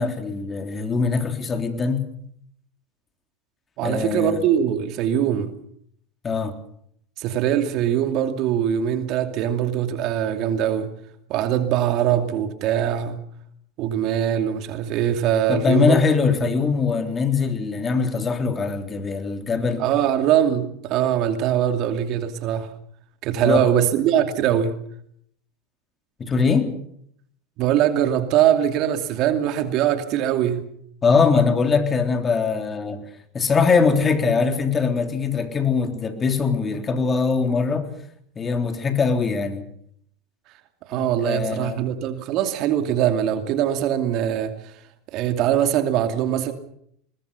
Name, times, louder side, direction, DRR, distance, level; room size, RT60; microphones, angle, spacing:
voice 1, 0.0-2.1 3.8-4.4 6.2-6.5 15.5-19.8 23.4-23.7 26.2-26.7 31.0-33.0 33.3-37.9 38.4-39.6 40.9-41.8, left 5 dB, 25° left, 7 dB, 3.5 m, -22 dB
voice 2, 3.8-5.5 7.2-10.9 11.3-13.2 13.8-16.0 19.8-22.7 23.2-24.7 27.6-30.6 40.9-44.7 45.1-46.5, right 10 dB, 55° right, 8 dB, 2.6 m, -22 dB
21.5 x 20.5 x 7.0 m, 0.69 s
hypercardioid pair, 95°, 0 cm